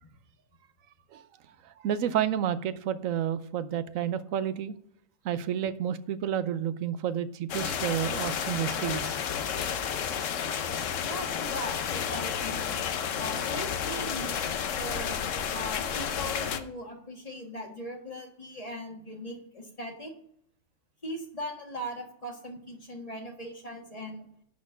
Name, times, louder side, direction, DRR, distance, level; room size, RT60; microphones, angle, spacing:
voice 1, 1.6-4.7 5.2-9.2, right 9 dB, 80° right, 13 dB, 1.0 m, -30 dB
sound 1, 7.5-16.6, left 8 dB, 70° left, 1.1 m, -31 dB
voice 2, 11.0-12.8 13.2-15.2 15.5-20.1 21.0-24.2, equal, 30° left, 2 dB, 1.6 m, -39 dB
11.0 x 4.3 x 7.0 m, 0.68 s
omnidirectional pair, 1.4 m